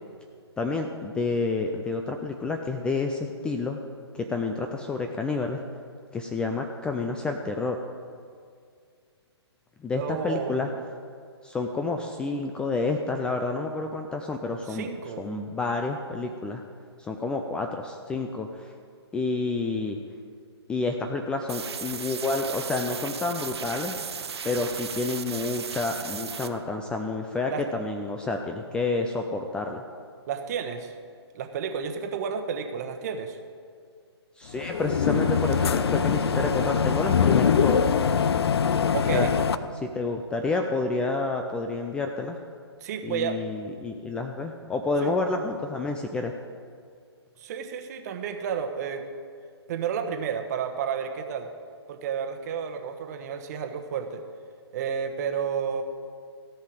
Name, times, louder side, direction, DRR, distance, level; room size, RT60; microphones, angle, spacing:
voice 1, 0.6-3.8 4.1-5.6 6.1-7.8 9.8-10.7 11.4-14.9 15.2-16.6 17.0-18.7 19.1-20.0 20.7-24.0 24.4-29.8 34.4-38.0 39.1-39.3 39.7-42.4 43.0-46.3, left 3 dB, 5° left, 4 dB, 0.4 m, -29 dB
voice 2, 10.0-10.8 14.7-15.3 27.5-27.6 30.3-30.9 31.3-33.4 38.9-39.3 42.8-43.4 44.0-44.1 45.0-45.1 47.4-49.0 49.7-51.5 51.9-54.2 54.7-55.8, right 7 dB, 40° right, 6 dB, 1.1 m, -31 dB
sound 1, 21.5-26.5, right 6 dB, 70° right, 0.8 m, -36 dB
sound 2, 34.5-39.6, left 6 dB, 65° left, 0.6 m, -23 dB
16.5 x 5.6 x 7.7 m, 2.2 s
figure-of-eight pair, 135°, 14 cm